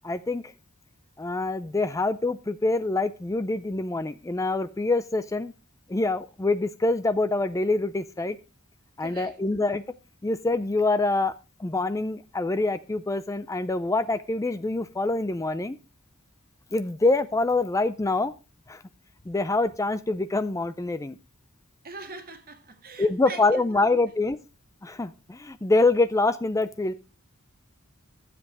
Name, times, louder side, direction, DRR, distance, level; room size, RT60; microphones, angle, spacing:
voice 1, 0.0-0.4 1.2-5.5 5.9-8.4 9.0-9.8 10.2-11.3 11.6-15.8 16.7-18.3 18.7-18.8 19.3-21.1 23.0-24.4 24.8-26.9, left 2 dB, 15° left, 0.4 m, -25 dB
voice 2, 9.0-9.7 21.8-24.0, right 3 dB, 45° right, 1.8 m, -42 dB
12.5 x 7.7 x 4.6 m
head